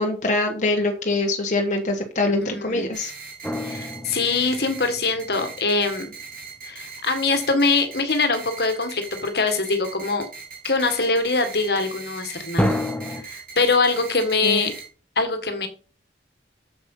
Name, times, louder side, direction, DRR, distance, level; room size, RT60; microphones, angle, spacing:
voice 1, 0.0-3.1 14.4-14.7, left 2 dB, 45° left, 2 dB, 1.3 m, -24 dB
voice 2, 2.4-2.9 3.6-6.2 6.7-10.2 10.6-12.8 13.2-14.7 15.1-15.7, left 3 dB, 60° left, 8 dB, 1.6 m, -23 dB
sound 1, 2.9-14.9, right 5 dB, 50° right, 3.2 m, -39 dB
sound 2, 3.4-5.5 12.6-13.2, left 1 dB, 5° left, 0.9 m, -28 dB
7.6 x 7.1 x 5.5 m, 0.38 s
head